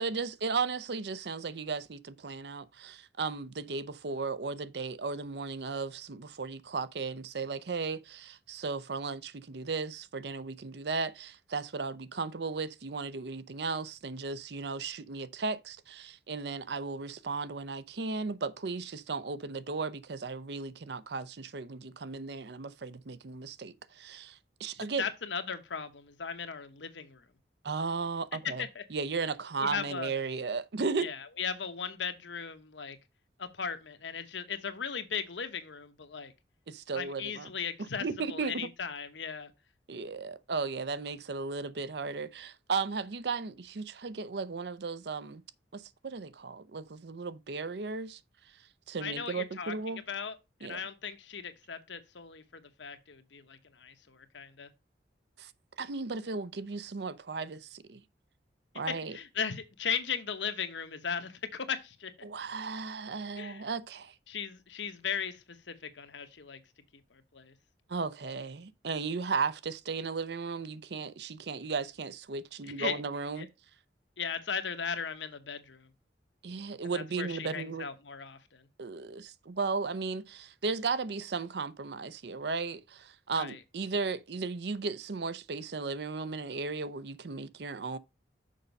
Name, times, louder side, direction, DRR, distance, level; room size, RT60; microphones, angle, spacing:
voice 1, 0.0-25.0 27.6-28.6 28.9-31.1 36.7-37.5 38.0-38.5 39.9-45.4 45.7-48.2 48.9-50.0 50.6-50.8 55.4-55.5 55.8-58.0 58.7-59.2 62.2-64.1 67.9-73.5 76.4-77.9 78.8-88.0, right 4 dB, 65° right, 0.6 m, -35 dB
voice 2, 25.0-27.2 28.4-28.8 29.6-30.2 31.0-33.0 33.4-36.3 36.9-39.5 49.0-54.7 59.1-62.1 63.4-63.7 64.3-66.6 67.1-67.5 72.6-73.0 73.4-73.5 74.2-75.9 76.9-78.7 83.4-83.6, left 6 dB, 85° left, 1.1 m, -37 dB
6.6 x 5.2 x 5.3 m
head